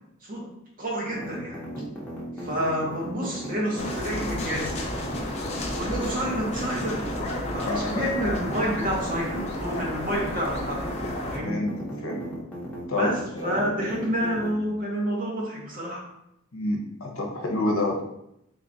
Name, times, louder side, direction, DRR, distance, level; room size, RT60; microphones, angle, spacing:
voice 1, 0.8-1.7 2.4-4.8 5.7-7.0 7.5-10.9 11.3-11.6 12.9-16.0, equal, 40° right, -2 dB, 1.0 m, -29 dB
sound 1, 1.1-14.5, right 1 dB, 5° left, 0.9 m, -37 dB
sound 2, 3.8-11.4, left 1 dB, 30° left, 0.6 m, -32 dB
voice 2, 7.6-8.0 11.0-11.1 11.4-12.2 12.9-13.8 16.5-18.0, left 2 dB, 75° left, 1 dB, 0.8 m, -29 dB
3.8 x 2.4 x 3.9 m, 0.81 s
head